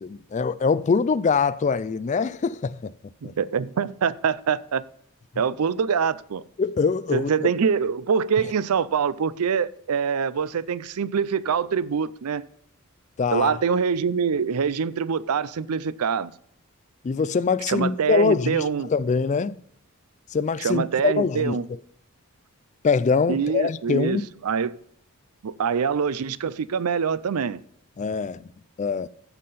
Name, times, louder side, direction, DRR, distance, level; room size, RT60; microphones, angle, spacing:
voice 1, 0.0-2.9 3.2-3.3 6.6-7.5 13.2-13.6 17.0-19.6 20.3-21.6 22.8-24.3 28.0-28.5 28.8-29.1, left 5 dB, 35° left, 0.3 m, -23 dB
voice 2, 3.2-4.8 5.4-6.4 7.1-12.5 13.3-16.3 17.7-18.9 20.6-21.7 23.3-24.8 25.4-27.6, right 6 dB, 85° right, 0.5 m, -24 dB
15.0 x 5.7 x 4.1 m
head